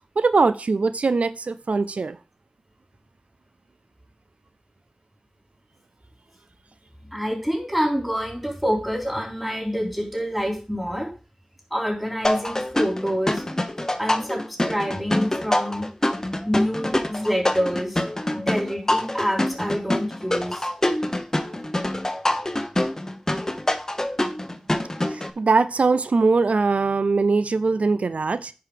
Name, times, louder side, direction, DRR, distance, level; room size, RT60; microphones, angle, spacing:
voice 1, 0.2-2.2 25.1-28.5, right 4 dB, 90° right, 13 dB, 0.4 m, -21 dB
voice 2, 7.1-11.1 11.7-13.4 14.0-15.9 16.4-18.0 18.3-20.7, equal, 5° right, 0 dB, 3.5 m, -26 dB
sound 1, 12.2-25.3, left 1 dB, 25° left, 0.8 m, -25 dB
9.7 x 4.8 x 4.9 m, 0.33 s
wide cardioid pair, 60°, 2 cm